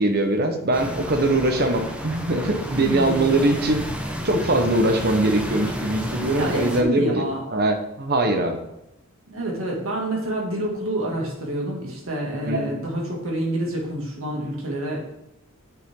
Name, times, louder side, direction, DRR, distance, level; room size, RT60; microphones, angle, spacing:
voice 1, 0.0-3.8 4.2-7.2 7.5-8.6 12.5-12.7, right 1 dB, 50° right, 6 dB, 1.1 m, -22 dB
sound 1, 0.7-6.8, equal, 5° right, 0.9 m, -31 dB
voice 2, 2.8-3.4 6.4-7.4 9.3-15.0, right 1 dB, 80° right, -1 dB, 2.3 m, -27 dB
9.0 x 7.0 x 3.8 m, 0.86 s
head